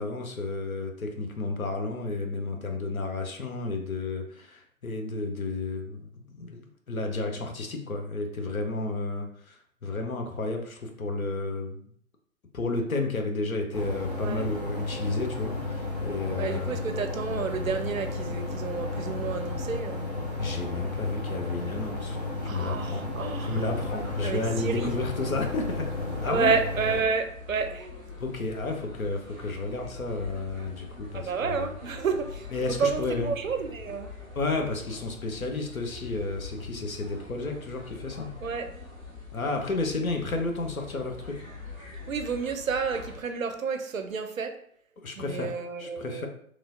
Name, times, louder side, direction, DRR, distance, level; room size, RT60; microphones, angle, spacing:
voice 1, 0.0-6.6 6.9-11.8 12.5-16.8 20.4-23.0 23.4-25.9 26.2-26.5 28.2-31.8 32.5-33.3 34.4-38.3 39.3-41.4 45.0-46.3, left 3 dB, 80° left, 3 dB, 0.7 m, -32 dB
sound 1, 13.7-27.0, left 2 dB, 35° left, 0.4 m, -33 dB
voice 2, 16.4-20.0 22.5-23.7 24.2-24.9 26.3-27.9 31.2-34.1 38.4-38.7 42.1-44.6 45.2-46.3, right 5 dB, 75° right, 7 dB, 0.5 m, -30 dB
sound 2, 23.7-43.2, left 4 dB, 15° right, 0.9 m, -43 dB
3.1 x 2.3 x 2.5 m, 0.64 s
figure-of-eight pair, 135°, 41 cm